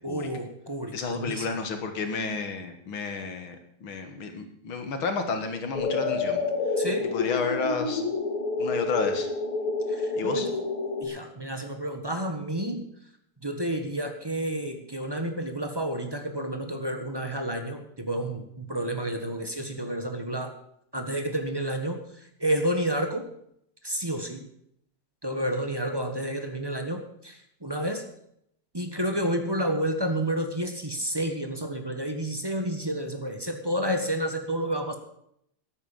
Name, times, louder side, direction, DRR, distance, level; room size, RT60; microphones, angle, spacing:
voice 1, 0.0-1.5 6.8-7.1 9.9-10.5 11.0-12.9 13.4-20.5 20.9-22.0 22.4-23.3 23.8-24.4 25.2-28.0 28.7-35.0, right 1 dB, 15° right, 5 dB, 1.1 m, -30 dB
voice 2, 0.9-6.4 7.0-8.0 8.6-9.3 10.2-10.5, left 4 dB, 70° left, 6 dB, 2.4 m, -31 dB
sound 1, 5.7-11.0, left 3 dB, 90° left, 3.7 m, -28 dB
13.5 x 9.1 x 7.3 m, 0.74 s
omnidirectional pair, 2.3 m